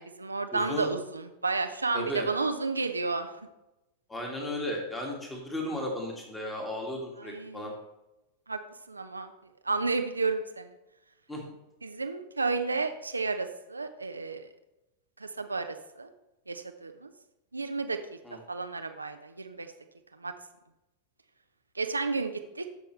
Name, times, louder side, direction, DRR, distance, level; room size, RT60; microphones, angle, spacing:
voice 1, 0.0-3.3 7.2-7.7 8.5-8.6 8.9-9.3 9.6-10.7 11.8-14.5 15.2-16.1 16.5-17.1 17.5-18.0 18.5-19.7 20.2-20.3 21.7-22.6, right 3 dB, 80° right, 7 dB, 0.7 m, -32 dB
voice 2, 0.5-0.9 1.9-2.3 4.1-7.7 11.3-11.4 18.2-18.4, equal, 10° left, 0 dB, 2.1 m, -35 dB
14.5 x 5.8 x 3.3 m, 0.96 s
figure-of-eight pair, 90°, 0 cm